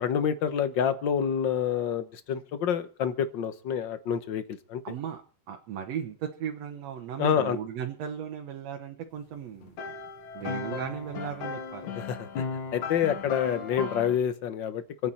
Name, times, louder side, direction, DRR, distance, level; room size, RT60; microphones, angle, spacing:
voice 1, 0.0-4.4 4.7-4.8 7.2-7.6 11.8-12.4 12.7-15.1, left 8 dB, 55° left, 11 dB, 1.3 m, -28 dB
voice 2, 4.8-5.2 5.5-9.7 10.3-11.9, right 8 dB, 65° right, 3 dB, 2.3 m, -36 dB
sound 1, 9.6-14.2, left 5 dB, 85° left, 3.2 m, -36 dB
27.5 x 9.5 x 4.3 m, 0.38 s
omnidirectional pair, 3.3 m